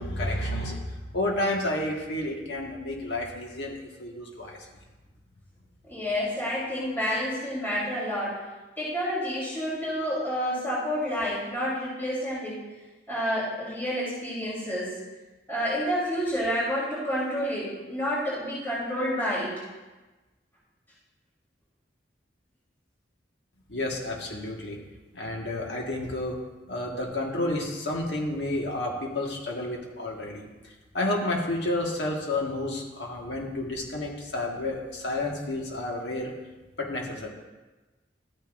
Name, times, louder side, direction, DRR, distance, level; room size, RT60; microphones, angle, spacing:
voice 1, 0.0-4.6 23.7-24.8 25.1-26.4 26.7-36.3 36.8-37.3, left 1 dB, 70° left, -1 dB, 1.7 m, -31 dB
voice 2, 5.9-8.4 8.8-12.6 13.1-14.9 15.5-19.5, equal, 10° left, -8 dB, 3.7 m, -29 dB
13.0 x 9.3 x 2.6 m, 1.2 s
head